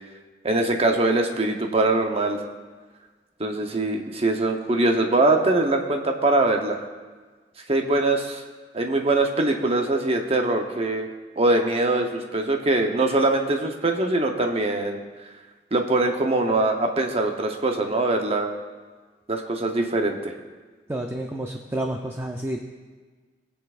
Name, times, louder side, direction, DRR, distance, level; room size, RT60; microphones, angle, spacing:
voice 1, 0.4-2.4 3.4-6.8 7.7-8.4 8.7-11.1 11.4-15.0 15.7-18.5 19.3-20.3, right 2 dB, 35° right, 4 dB, 0.9 m, -22 dB
voice 2, 20.9-22.6, right 1 dB, 15° right, 2 dB, 0.5 m, -29 dB
21.0 x 7.0 x 2.5 m, 1.4 s
head